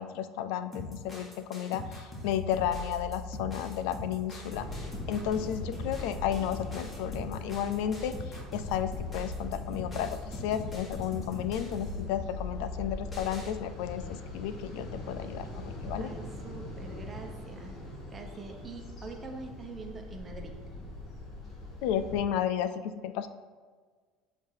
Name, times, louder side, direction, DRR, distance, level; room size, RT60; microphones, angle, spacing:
voice 1, 0.0-4.7 5.1-8.1 8.5-16.1 21.8-23.3, left 9 dB, 75° left, 11 dB, 0.3 m, -33 dB
sound 1, 0.7-13.5, left 2 dB, 25° left, 1.8 m, -40 dB
sound 2, 4.5-22.2, left 2 dB, 45° left, 1.7 m, -42 dB
voice 2, 16.0-17.7 18.1-20.5, right 3 dB, 25° right, 3 dB, 0.9 m, -44 dB
7.4 x 2.8 x 4.7 m, 1.5 s
supercardioid pair, 105°, 0 cm